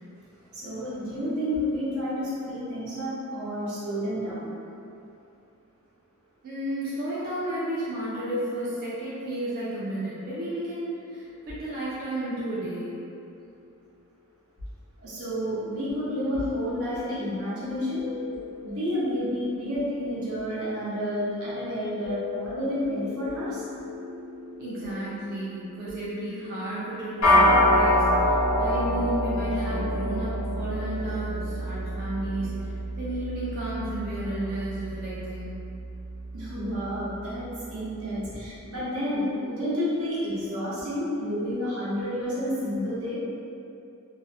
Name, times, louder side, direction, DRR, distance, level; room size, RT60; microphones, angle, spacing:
voice 1, 0.5-4.5 15.0-18.0 18.6-23.6 36.3-43.2, equal, 80° right, -10 dB, 0.8 m, -30 dB
voice 2, 6.4-13.0 24.6-35.6, right 1 dB, 45° right, -9 dB, 0.4 m, -33 dB
sound 1, 15.6-28.8 33.1-33.3, left 4 dB, 35° left, 0.5 m, -42 dB
sound 2, 27.2-36.7, left 1 dB, 75° left, 0.7 m, -25 dB
2.5 x 2.0 x 2.5 m, 2.7 s
head